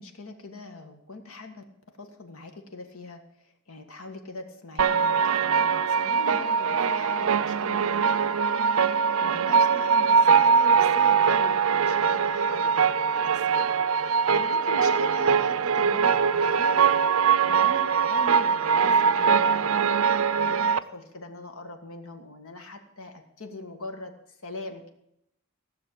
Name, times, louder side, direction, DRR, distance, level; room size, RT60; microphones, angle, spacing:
voice 1, 0.0-1.6 2.0-3.2 3.7-8.9 9.2-16.9 17.5-19.8 20.3-24.1 24.4-24.9, left 1 dB, 80° left, 5 dB, 1.7 m, -41 dB
sound 1, 4.8-20.8, right 6 dB, 75° right, 0.5 m, -22 dB
15.5 x 6.5 x 8.5 m, 0.80 s
head